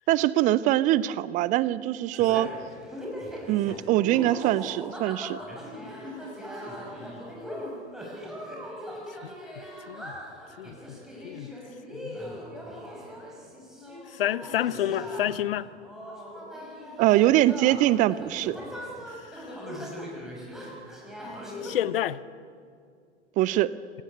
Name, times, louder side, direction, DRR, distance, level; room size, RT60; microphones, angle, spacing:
voice 1, 0.1-2.5 3.5-5.4 17.0-18.6 23.4-23.7, right 15 dB, 25° right, 19 dB, 0.5 m, -23 dB
sound 1, 2.1-21.8, equal, ahead, 6.0 m, -40 dB
voice 2, 9.2-10.1 10.6-11.5 11.9-12.2 14.1-15.7 19.3-19.4 21.6-22.2, left 12 dB, 55° left, 18 dB, 0.9 m, -30 dB
26.0 x 18.0 x 9.7 m, 2.2 s
figure-of-eight pair, 95°, 34 cm